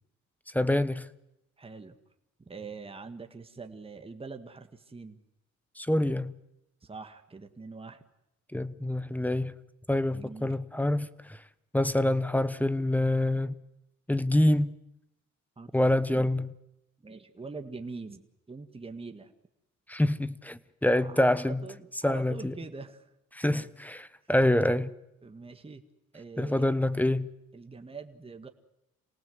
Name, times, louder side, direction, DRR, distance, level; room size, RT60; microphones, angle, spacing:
voice 1, 0.5-1.1 5.8-6.3 8.5-9.5 9.9-11.4 11.7-13.6 14.1-14.7 15.7-16.5 19.9-21.6 22.0-22.5 23.3-24.9 26.4-27.3, left 1 dB, 5° left, 1.0 m, -26 dB
voice 2, 1.6-2.0 2.4-5.2 6.8-8.0 10.1-10.6 15.6-15.7 17.0-19.3 20.9-23.1 23.4-23.7 25.2-25.8 26.1-26.7 27.5-28.5, right 4 dB, 20° right, 1.7 m, -44 dB
27.5 x 18.5 x 7.9 m
cardioid pair, 90°, 30 cm